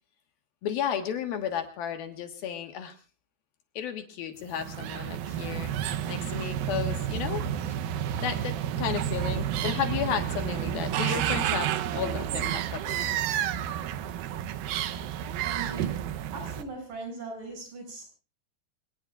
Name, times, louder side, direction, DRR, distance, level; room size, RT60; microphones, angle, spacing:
voice 1, 0.6-3.0 3.8-5.8 6.1-7.4 8.2-13.1, left 8 dB, 70° left, 6 dB, 3.2 m, -33 dB
sound 1, 4.5-16.6, right 10 dB, 75° right, 2.4 m, -30 dB
voice 2, 15.4-16.1 16.3-18.0, right 3 dB, 55° right, 3 dB, 8.7 m, -39 dB
26.0 x 19.0 x 2.4 m, 0.35 s
omnidirectional pair, 4.7 m